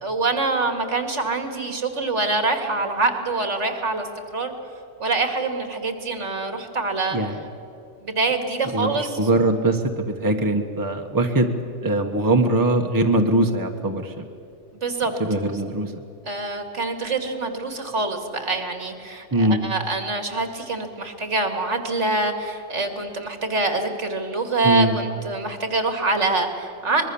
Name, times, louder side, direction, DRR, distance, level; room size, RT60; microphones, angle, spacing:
voice 1, 0.0-4.1 4.3-4.5 5.0-7.2 8.0-9.3 14.8-15.1 16.2-27.1, right 3 dB, 65° right, 6 dB, 2.5 m, -25 dB
voice 2, 8.7-11.5 11.8-14.2 15.2-15.9 19.3-19.6 24.6-24.9, right 2 dB, 15° right, 4 dB, 1.3 m, -21 dB
24.5 x 21.5 x 7.1 m, 2.6 s
omnidirectional pair, 1.3 m